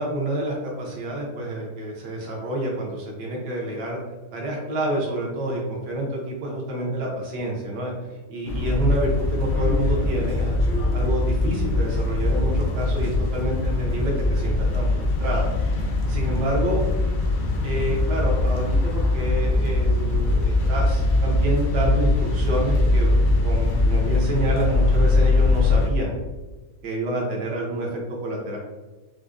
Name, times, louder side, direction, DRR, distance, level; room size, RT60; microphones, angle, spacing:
voice 1, 0.0-4.0 4.3-10.6 10.9-14.9 15.2-15.5 15.8-16.8 17.6-26.2 26.8-28.6, right 1 dB, 65° right, -2 dB, 1.2 m, -28 dB
sound 1, 8.5-25.9, left 2 dB, 70° left, 1.2 m, -22 dB
4.6 x 2.1 x 2.4 m, 1.2 s
omnidirectional pair, 2.2 m